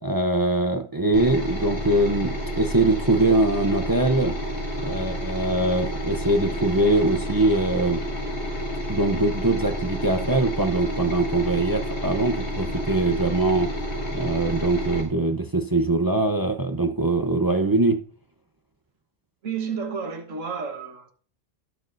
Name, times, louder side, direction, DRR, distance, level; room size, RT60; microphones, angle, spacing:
voice 1, 0.0-4.3 4.8-8.0 8.9-13.7 14.1-18.0, right 2 dB, 25° right, 0.5 m, -22 dB
sound 1, 1.1-15.0, equal, 60° left, 2.5 m, -30 dB
voice 2, 19.4-21.1, right 6 dB, 90° right, 1.6 m, -31 dB
18.0 x 6.7 x 2.6 m
omnidirectional pair, 1.3 m